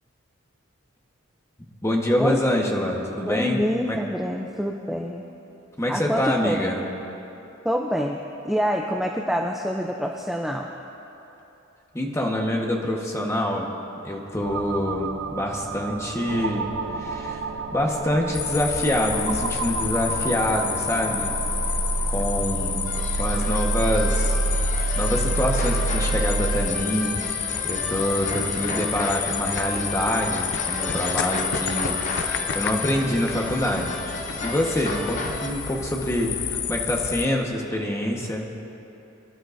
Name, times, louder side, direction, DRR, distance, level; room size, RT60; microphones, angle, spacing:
voice 1, 1.8-4.0 5.8-6.9 11.9-13.7 14.0-17.4 17.7-21.3 22.1-24.4 25.0-27.2 27.6-32.0 32.3-34.0 34.4-38.5, left 1 dB, 15° left, 0 dB, 1.2 m, -26 dB
voice 2, 3.3-5.3 5.9-6.6 7.6-10.7, equal, ahead, 0 dB, 0.5 m, -26 dB
sound 1, 14.4-26.7, right 3 dB, 70° right, 0.6 m, -28 dB
sound 2, 18.3-37.3, left 8 dB, 55° left, 0.6 m, -30 dB
sound 3, 22.8-35.5, left 1 dB, 40° left, 1.1 m, -34 dB
24.5 x 11.0 x 2.6 m, 3.0 s
head